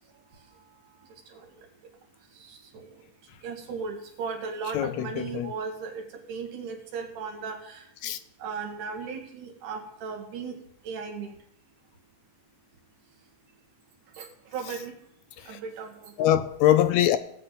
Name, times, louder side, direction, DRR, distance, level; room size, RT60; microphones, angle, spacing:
voice 1, 3.4-7.8 8.4-10.6 10.8-11.3 14.2-14.3 14.5-14.9 15.5-16.1, right 5 dB, 80° right, 3.1 m, -36 dB
voice 2, 4.7-5.5 8.0-8.2 16.2-17.2, left 12 dB, 80° left, 1.6 m, -22 dB
18.0 x 7.5 x 4.1 m
omnidirectional pair, 3.6 m